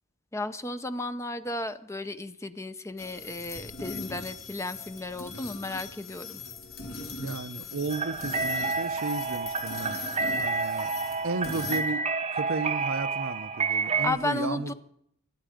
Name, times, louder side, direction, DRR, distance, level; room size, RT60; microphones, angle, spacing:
voice 1, 0.3-6.4 14.0-14.7, left 2 dB, 15° left, 0.6 m, -34 dB
sound 1, 3.0-11.8, left 4 dB, 65° left, 2.5 m, -40 dB
voice 2, 7.2-10.0 10.4-10.9 11.2-14.7, right 3 dB, 65° right, 0.7 m, -34 dB
sound 2, 7.9-14.1, right 4 dB, 30° right, 0.8 m, -29 dB
23.5 x 9.6 x 5.1 m
head